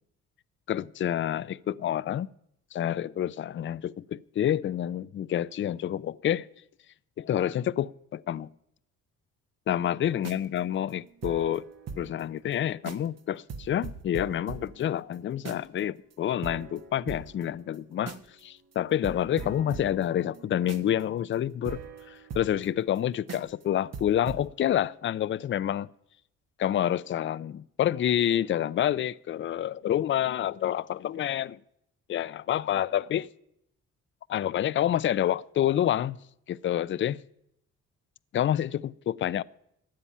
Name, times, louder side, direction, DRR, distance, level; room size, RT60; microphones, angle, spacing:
voice 1, 0.7-2.3 2.7-6.5 7.2-8.5 9.7-11.6 12.0-21.8 22.1-25.9 26.6-31.6 32.1-33.3 34.3-36.2 36.5-37.2 38.3-39.4, left 11 dB, 40° left, 0.5 m, -28 dB
sound 1, 10.1-12.2 12.5-12.6 12.8-13.2 13.5-15.8 16.1-16.2 16.4-18.4 18.7-18.8 19.0-23.0 23.3-23.6 23.9-24.5, right 5 dB, 55° right, 1.3 m, -41 dB
15.0 x 9.9 x 5.6 m
cardioid pair, 90°, 30 cm